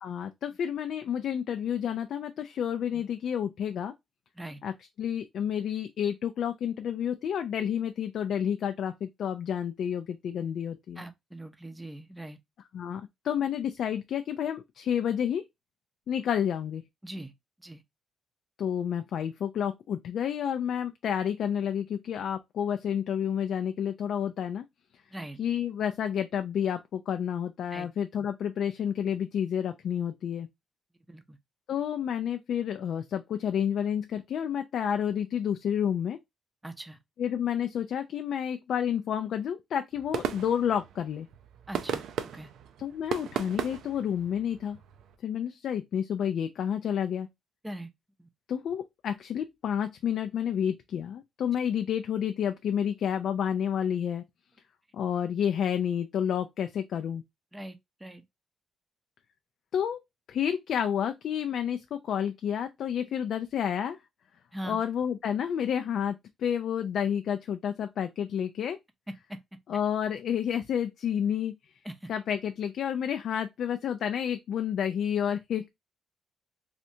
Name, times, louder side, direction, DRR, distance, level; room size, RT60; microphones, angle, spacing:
voice 1, 0.0-3.9 4.6-11.0 12.7-15.4 16.1-16.8 18.6-24.6 25.4-30.5 31.7-36.2 37.2-41.3 42.8-44.8 45.2-47.3 48.5-54.2 54.9-57.2 59.7-60.0 60.3-64.0 64.7-68.8 69.7-71.5 72.1-75.7, left 8 dB, 70° left, 0.3 m, -30 dB
voice 2, 11.0-12.4 17.0-17.3 17.6-17.8 25.1-25.4 27.7-27.9 28.2-28.3 31.1-31.4 36.6-37.0 41.7-42.5 47.6-47.9 48.2-48.3 57.5-58.2 64.5-64.8 69.1-69.4 71.8-72.1, right 1 dB, 10° right, 0.6 m, -41 dB
sound 1, 39.9-45.2, right 8 dB, 85° right, 0.4 m, -36 dB
3.2 x 2.7 x 2.6 m
cardioid pair, 105°, 0 cm